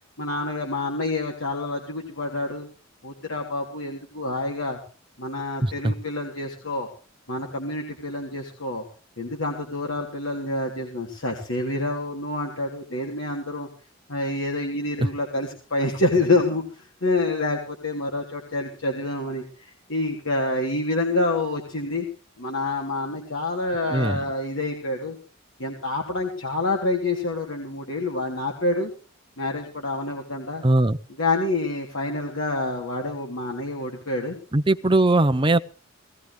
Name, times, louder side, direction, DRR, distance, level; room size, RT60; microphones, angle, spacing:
voice 1, 0.2-2.7 3.0-4.8 5.2-6.9 7.3-8.8 9.2-13.7 14.1-22.0 22.4-25.2 25.6-28.9 29.4-30.6 31.2-34.3, left 2 dB, 75° left, 0 dB, 3.2 m, -27 dB
voice 2, 5.6-5.9 23.9-24.2 30.6-31.0 34.5-35.6, right 2 dB, 25° right, 11 dB, 0.7 m, -20 dB
19.5 x 16.0 x 3.4 m, 0.36 s
head